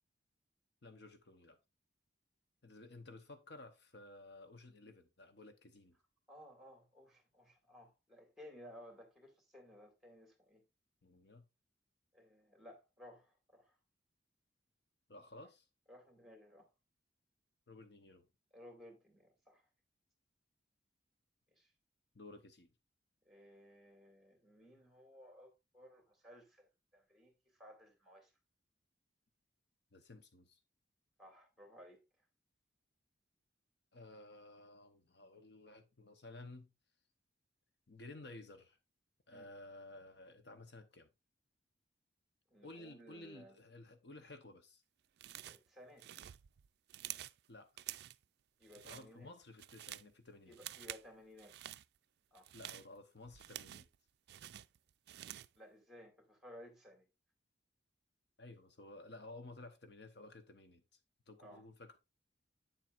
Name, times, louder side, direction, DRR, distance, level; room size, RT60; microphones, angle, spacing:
voice 1, 0.8-1.6 2.6-6.0 11.0-11.5 15.1-15.7 17.7-18.3 22.1-22.7 29.9-30.6 33.9-36.7 37.9-38.8 39.3-41.1 42.6-44.8 47.5-47.7 48.8-50.6 52.5-53.9 58.4-61.0 61.3-62.0, left 2 dB, 60° left, 0.9 m, -54 dB
voice 2, 6.3-10.6 12.1-13.8 15.9-16.7 18.5-19.7 21.6-21.7 23.2-27.3 27.6-28.3 31.2-32.0 39.3-39.5 42.5-43.6 45.4-46.1 48.6-49.3 50.5-51.6 52.3-52.5 55.6-57.1 61.4-61.7, equal, ahead, 2.2 m, -58 dB
sound 1, 45.2-45.7 46.0-47.4 47.8-48.2 48.6-49.1 49.4-50.1 50.5-51.1 51.4-51.8 52.3-54.0 54.3-55.6, right 13 dB, 55° right, 0.3 m, -49 dB
9.0 x 7.4 x 2.5 m
head